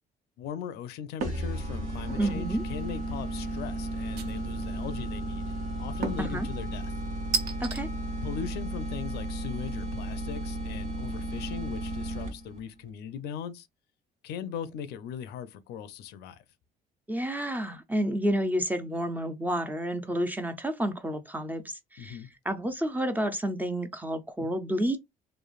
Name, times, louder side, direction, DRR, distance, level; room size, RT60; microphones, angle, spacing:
voice 1, 0.4-5.4 5.8-6.9 8.2-13.7 14.2-16.4 22.0-22.3, left 8 dB, 75° left, 0.4 m, -39 dB
sound 1, 1.2-12.6, right 1 dB, 45° right, 1.2 m, -34 dB
sound 2, 1.2-1.5 2.0-2.4 4.2-4.7 6.0-6.4 7.3-7.8, right 5 dB, 70° right, 0.6 m, -32 dB
voice 2, 2.2-2.6 6.2-6.5 7.6-7.9 17.1-22.2 22.5-25.0, right 1 dB, 10° right, 0.4 m, -30 dB
3.1 x 2.0 x 2.4 m
cardioid pair, 110°, 17 cm